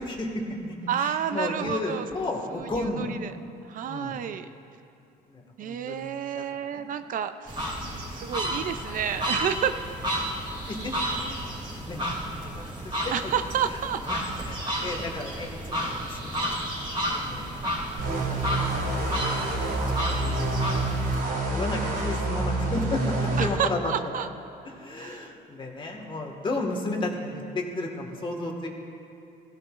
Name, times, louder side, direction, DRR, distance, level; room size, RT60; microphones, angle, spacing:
voice 1, 0.0-3.2 3.9-4.2 5.3-6.8 7.8-8.1 10.7-13.3 13.7-16.3 16.6-16.9 17.2-17.7 18.0-20.0 20.2-23.9 24.6-28.7, left 2 dB, 30° left, 2 dB, 1.7 m, -34 dB
voice 2, 0.9-2.1 2.5-3.3 3.7-4.5 5.6-7.7 8.2-9.7 13.1-14.0 23.4-24.3 25.0-25.3, right 9 dB, 55° right, 10 dB, 0.5 m, -30 dB
sound 1, 7.5-21.2, equal, 30° right, 2.7 m, -32 dB
sound 2, 18.0-23.5, right 2 dB, 70° right, 3.1 m, -27 dB
16.5 x 15.5 x 2.5 m, 2.8 s
cardioid pair, 110°, 17 cm